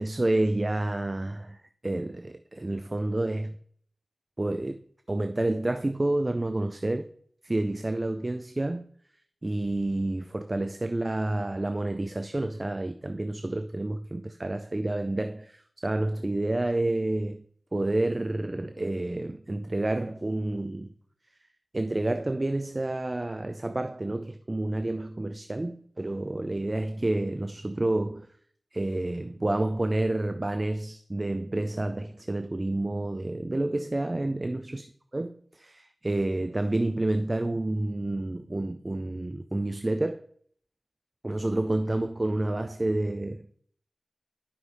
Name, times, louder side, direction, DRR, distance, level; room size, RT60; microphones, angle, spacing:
voice 1, 0.0-3.5 4.4-4.8 5.1-7.1 7.4-8.9 9.4-17.4 17.7-20.9 21.7-28.3 28.7-34.8 35.1-40.3 41.2-43.6, right 2 dB, 30° right, 0.4 m, -29 dB
11.0 x 5.5 x 3.3 m
wide cardioid pair, 70°, 0 cm